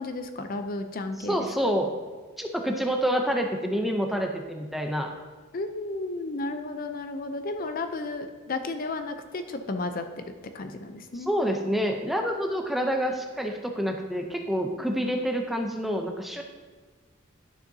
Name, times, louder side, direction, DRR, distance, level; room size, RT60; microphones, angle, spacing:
voice 1, 0.0-1.5 5.5-10.2 10.5-11.3, left 2 dB, 45° left, 7 dB, 0.5 m, -33 dB
voice 2, 1.3-1.9 2.4-5.1 11.1-16.4, equal, ahead, 3 dB, 0.6 m, -27 dB
11.0 x 6.6 x 2.7 m, 1.4 s
head